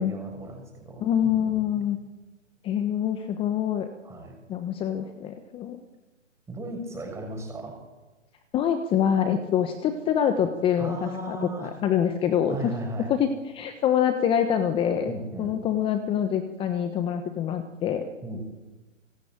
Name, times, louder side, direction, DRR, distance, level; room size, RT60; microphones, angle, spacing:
voice 1, 0.0-1.7 4.0-4.3 6.5-7.8 10.8-11.7 12.5-13.1 15.1-15.5 18.2-18.4, right 2 dB, 5° right, 3 dB, 6.4 m, -36 dB
voice 2, 1.0-2.0 2.6-3.9 4.5-5.8 8.5-12.7 13.1-18.1, left 9 dB, 15° left, 9 dB, 1.2 m, -25 dB
25.5 x 23.5 x 9.1 m, 1.2 s
hypercardioid pair, 140°, 38 cm